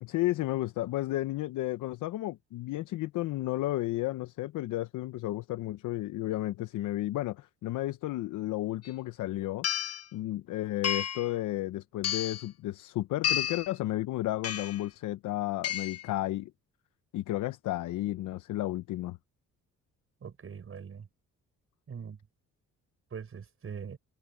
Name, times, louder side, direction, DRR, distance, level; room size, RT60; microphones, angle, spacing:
voice 1, 0.0-9.7 10.1-16.5 17.1-19.2, left 16 dB, 85° left, 0.8 m, -32 dB
sound 1, 8.8-8.9 9.6-10.0 10.8-11.3 12.0-12.5 13.2-13.7 14.4-14.8 15.6-16.1, left 9 dB, 55° left, 1.4 m, -31 dB
voice 2, 20.2-21.1 21.9-22.2 23.1-24.0, right 6 dB, 45° right, 6.5 m, -42 dB
cardioid pair, 90°, 30 cm